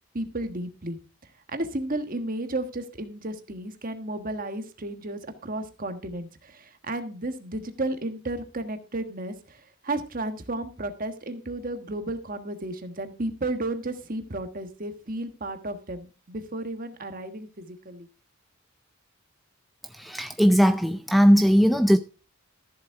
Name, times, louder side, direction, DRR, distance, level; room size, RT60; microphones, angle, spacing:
voice 1, 0.1-1.0 1.5-18.1, right 2 dB, 40° right, 8 dB, 1.4 m, -33 dB
voice 2, 19.9-22.0, equal, ahead, 9 dB, 0.4 m, -19 dB
14.0 x 7.4 x 4.6 m, 0.34 s
head